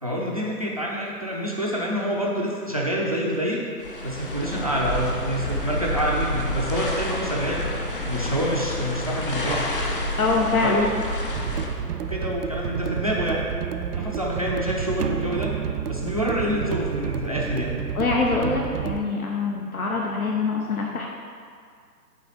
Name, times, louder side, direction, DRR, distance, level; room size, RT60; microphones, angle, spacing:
voice 1, 0.0-3.6 4.0-7.6 8.1-9.6 10.6-10.9 12.1-13.5 13.9-15.5 15.9-17.7, equal, 25° right, -3 dB, 0.6 m, -27 dB
sound 1, 3.8-11.7, left 1 dB, 35° left, 0.7 m, -29 dB
voice 2, 10.2-10.8 13.9-14.1 17.9-21.1, left 4 dB, 60° left, -1 dB, 1.0 m, -24 dB
sound 2, 11.3-19.0, right 7 dB, 70° right, 0.6 m, -30 dB
8.9 x 3.4 x 6.5 m, 2.2 s
hypercardioid pair, 170°, 48 cm